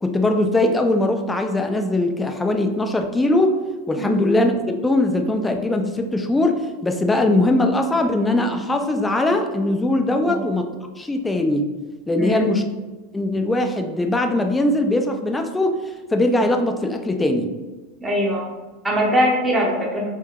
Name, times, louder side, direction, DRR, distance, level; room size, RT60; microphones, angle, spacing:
voice 1, 0.0-3.6 3.9-10.6 11.0-11.7 12.1-12.6 13.1-15.8 16.1-17.5, left 1 dB, 10° left, 5 dB, 0.4 m, -20 dB
voice 2, 12.2-12.5 18.0-18.4 18.8-20.0, equal, 15° right, -2 dB, 0.7 m, -21 dB
3.6 x 2.6 x 2.3 m, 1.2 s
figure-of-eight pair, 90°, 0 cm